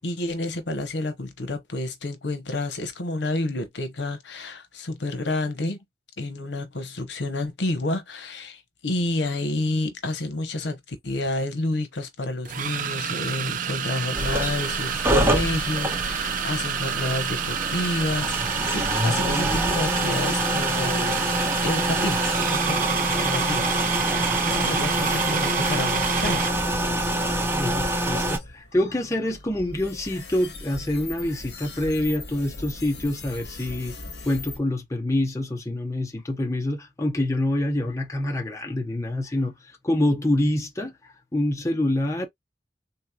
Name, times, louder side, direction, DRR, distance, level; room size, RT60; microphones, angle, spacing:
voice 1, 0.0-5.8 6.2-21.2 21.6-22.8 23.1-23.8 24.1-26.5, left 2 dB, 85° left, 0.9 m, -29 dB
sound 1, 11.3-11.4 12.5-26.6, right 8 dB, 50° right, 0.4 m, -29 dB
sound 2, 14.1-28.4, right 1 dB, 15° right, 0.7 m, -26 dB
sound 3, 20.9-34.6, left 2 dB, 65° left, 1.2 m, -41 dB
voice 2, 27.5-34.0 34.2-40.9 41.3-42.3, left 1 dB, 20° left, 0.8 m, -26 dB
3.5 x 2.9 x 2.3 m
head